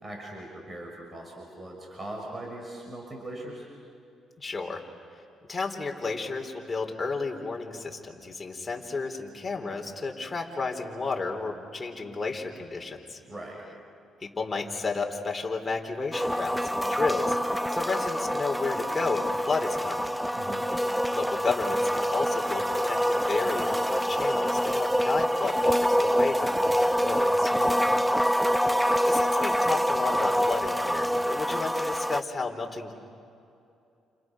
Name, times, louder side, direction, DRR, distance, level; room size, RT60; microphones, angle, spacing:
voice 1, 0.0-3.6 13.3-13.6 20.3-20.6 27.5-28.0, right 1 dB, 30° right, 0 dB, 6.4 m, -40 dB
voice 2, 4.4-4.8 5.5-13.2 14.2-20.1 21.1-27.5 29.0-32.9, left 4 dB, 25° left, 1 dB, 4.1 m, -32 dB
sound 1, 16.1-32.2, equal, ahead, 0.6 m, -26 dB
30.0 x 30.0 x 6.4 m, 2.6 s
cardioid pair, 90°, 0 cm